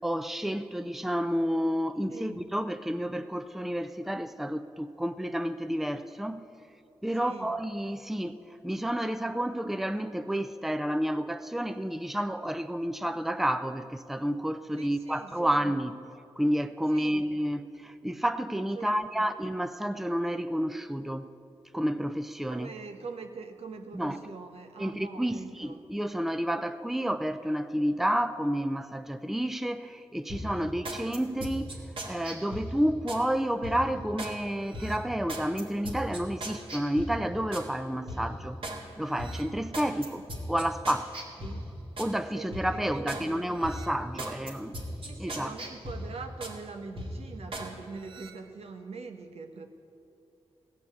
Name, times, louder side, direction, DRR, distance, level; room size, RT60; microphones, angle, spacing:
voice 1, 0.0-6.4 7.0-8.4 8.6-15.9 16.4-21.3 21.7-22.7 23.9-24.2 24.8-31.8 32.1-38.6 39.0-40.2 40.5-41.1 42.0-44.7 45.2-45.5, equal, ahead, 10 dB, 0.5 m, -30 dB
voice 2, 2.1-2.4 7.1-7.6 14.8-15.7 16.9-17.2 18.7-19.3 22.5-25.9 30.5-30.8 39.8-40.2 41.4-41.7 42.3-43.5 44.1-44.5 45.0-49.7, right 4 dB, 75° right, 6 dB, 1.0 m, -43 dB
sound 1, 30.3-33.2 33.6-34.4 34.7-37.7 38.1-38.8 39.2-42.1 42.5-43.3 43.6-46.6 47.0-47.7 48.0-48.3, equal, 60° right, 2.0 m, -38 dB
16.0 x 6.0 x 8.4 m, 2.7 s
cardioid pair, 50°, 11 cm